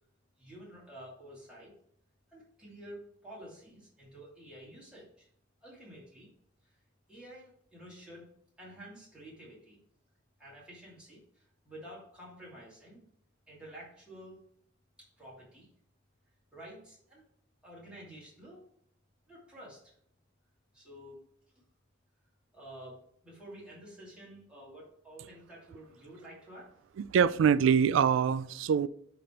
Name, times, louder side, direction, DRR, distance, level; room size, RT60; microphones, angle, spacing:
voice 1, 0.4-1.8 2.3-5.3 5.6-6.3 6.6-6.7 7.1-8.3 8.6-9.8 10.4-13.1 13.5-14.4 15.0-15.7 16.5-17.2 17.6-18.6 19.3-19.9 20.7-21.2 22.5-26.7, right 1 dB, 5° right, 2.6 m, -50 dB
voice 2, 27.0-28.9, right 7 dB, 75° right, 0.3 m, -24 dB
10.0 x 3.4 x 4.4 m
head